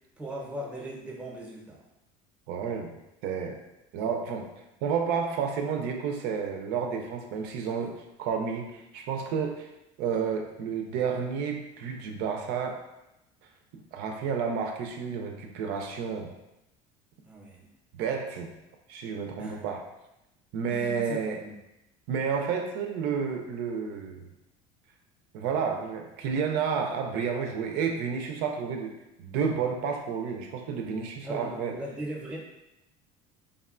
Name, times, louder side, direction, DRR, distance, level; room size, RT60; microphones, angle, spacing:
voice 1, 0.2-1.8 17.2-17.7 19.4-19.6 20.7-21.6 31.2-32.4, right 1 dB, 5° right, -3 dB, 0.6 m, -39 dB
voice 2, 2.5-2.9 3.2-3.6 3.9-4.5 4.8-9.7 10.0-12.8 13.7-16.3 17.9-18.5 18.9-19.8 20.5-21.4 22.1-24.3 25.3-31.7, right 6 dB, 70° right, 3 dB, 0.4 m, -31 dB
3.5 x 2.2 x 2.4 m, 0.91 s
cardioid pair, 125°, 17 cm